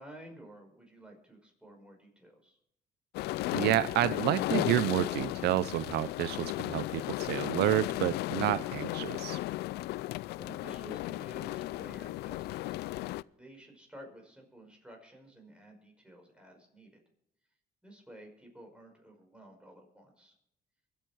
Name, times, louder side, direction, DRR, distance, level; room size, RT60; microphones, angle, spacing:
voice 1, 0.0-2.6 10.4-17.0 17.8-20.3, right 1 dB, 5° right, 2 dB, 5.6 m, -52 dB
sound 1, 3.1-13.2, left 17 dB, 75° left, 0.4 m, -35 dB
voice 2, 3.5-9.4, right 14 dB, 75° right, 17 dB, 0.5 m, -29 dB
23.5 x 9.1 x 4.6 m, 0.79 s
cardioid pair, 110°, 17 cm